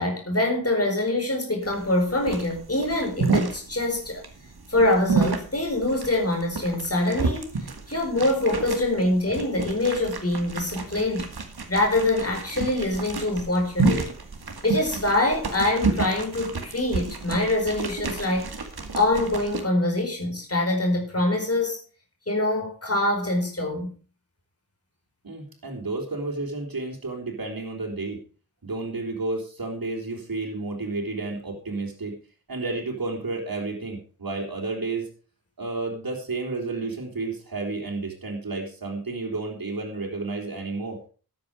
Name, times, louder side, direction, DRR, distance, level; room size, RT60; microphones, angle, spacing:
voice 1, 0.0-4.2 4.7-7.5 7.9-11.3 11.7-14.1 14.6-18.5 18.9-21.8 22.3-23.9, left 2 dB, 40° left, 4.9 m, -24 dB
sound 1, 1.7-19.6, right 4 dB, 85° right, 2.3 m, -30 dB
voice 2, 25.2-28.2 28.6-32.1 32.5-35.1 35.6-41.0, right 3 dB, 70° right, 4.1 m, -31 dB
13.0 x 9.3 x 5.0 m
wide cardioid pair, 60°, 37 cm